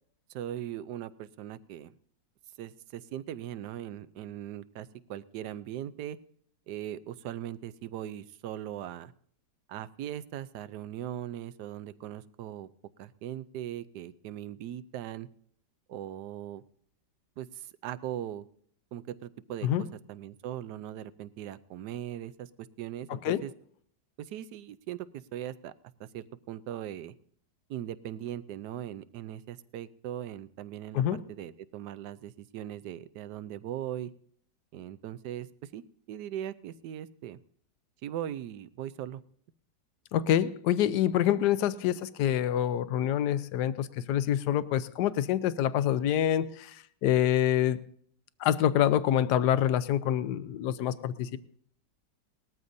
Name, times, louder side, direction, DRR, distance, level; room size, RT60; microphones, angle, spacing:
voice 1, 0.3-1.9 2.6-6.2 6.7-9.1 9.7-12.7 13.0-15.3 15.9-16.6 17.4-18.5 18.9-22.5 22.8-23.5 24.2-25.7 26.0-27.1 27.7-31.0 31.3-34.1 34.7-35.8 36.1-37.4 38.0-39.2, right 11 dB, 75° right, 14 dB, 1.2 m, -39 dB
voice 2, 40.1-46.8 47.0-47.8 48.4-51.4, left 11 dB, 75° left, 14 dB, 1.2 m, -26 dB
19.5 x 13.5 x 2.7 m, 0.62 s
omnidirectional pair, 1.9 m